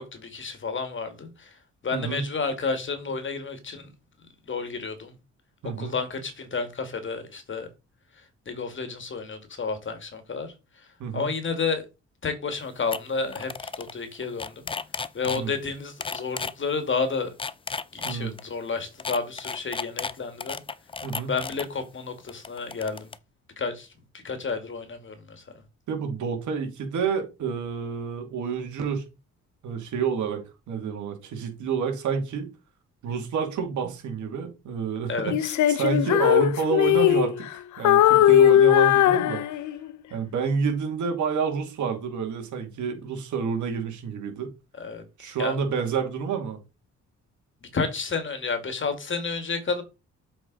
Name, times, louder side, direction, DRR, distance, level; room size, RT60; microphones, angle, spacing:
voice 1, 0.0-3.9 4.5-5.2 5.8-7.7 8.1-11.8 12.2-14.7 15.1-17.3 17.9-20.6 21.2-23.1 23.6-23.9 24.2-25.4 35.1-35.5 44.8-45.6 47.6-49.8, left 4 dB, 40° left, 2.1 m, -31 dB
voice 2, 1.9-2.3 5.6-5.9 11.0-11.3 15.2-15.5 18.0-18.3 21.0-21.3 25.9-29.1 29.6-32.5 33.0-39.4 40.1-44.5 45.2-46.6, right 6 dB, 75° right, 2.6 m, -29 dB
sound 1, 12.5-12.6 12.9-13.0 13.3-13.9 14.2-15.4 16.0-16.5 17.2-18.4 19.0-21.7 22.3-23.1, left 4 dB, 20° left, 0.5 m, -33 dB
Female singing, 35.3-37.5 37.8-39.9, left 11 dB, 75° left, 0.6 m, -19 dB
7.7 x 5.2 x 4.0 m
cardioid pair, 90°, 30 cm